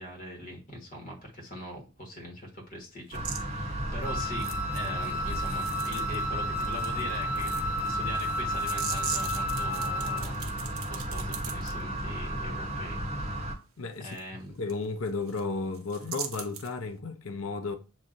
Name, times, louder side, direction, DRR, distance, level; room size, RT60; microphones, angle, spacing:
voice 1, 0.0-13.3 14.0-14.5, equal, 40° left, 1.5 m, -42 dB
sound 1, 3.1-13.6, right 1 dB, 30° right, 1.0 m, -34 dB
sound 2, 3.1-3.4 4.4-6.3 6.6-11.7 14.1-14.2 14.7-14.8 15.1-15.4 15.7-16.7, right 9 dB, 75° right, 0.7 m, -40 dB
Wind instrument woodwind instrument, 4.0-10.3, left 1 dB, 5° right, 0.9 m, -33 dB
voice 2, 13.8-14.2 14.5-17.7, left 3 dB, 65° left, 0.6 m, -33 dB
7.2 x 2.7 x 2.5 m
head